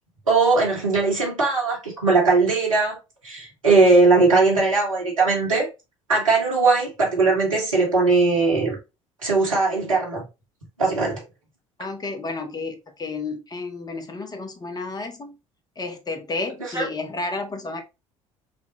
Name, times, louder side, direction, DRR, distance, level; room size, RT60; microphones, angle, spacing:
voice 1, 0.3-3.0 3.2-5.7 6.1-8.8 9.2-10.2 10.8-11.2 16.7-16.8, right 3 dB, 85° right, 1.5 m, -19 dB
voice 2, 11.8-15.4 15.8-17.8, left 3 dB, 25° left, 0.9 m, -31 dB
5.8 x 2.3 x 2.9 m
figure-of-eight pair, 60°, 17 cm